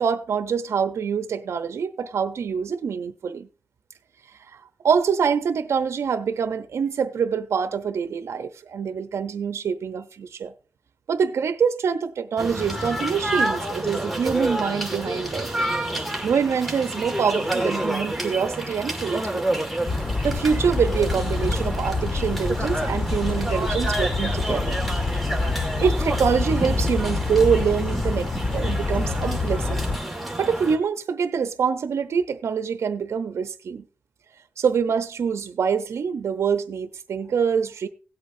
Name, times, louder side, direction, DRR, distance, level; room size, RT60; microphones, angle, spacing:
voice 1, 0.0-3.5 4.8-10.5 11.1-15.5 16.2-19.6 20.2-24.8 25.8-29.9 30.4-33.8 34.6-37.9, right 6 dB, 85° right, 0.8 m, -25 dB
sound 1, 12.4-30.8, right 1 dB, ahead, 2.0 m, -29 dB
Bird vocalization bird call bird song, 19.8-30.0, left 3 dB, 30° left, 0.8 m, -26 dB
17.0 x 8.2 x 2.7 m
wide cardioid pair, 90°, 5 cm